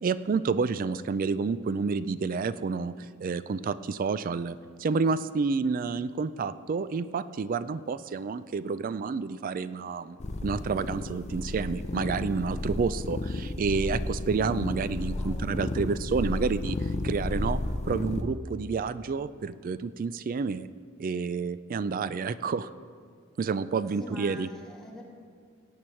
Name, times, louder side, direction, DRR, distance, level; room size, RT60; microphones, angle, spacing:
voice 1, 0.0-17.6 17.8-20.7 21.0-22.7 23.4-24.5, right 4 dB, 45° right, 15 dB, 0.3 m, -29 dB
sound 1, 10.2-18.2, left 2 dB, 35° left, 0.6 m, -32 dB
voice 2, 15.1-15.5 24.0-25.0, equal, 5° left, -3 dB, 1.9 m, -44 dB
17.5 x 8.5 x 4.5 m, 2.2 s
head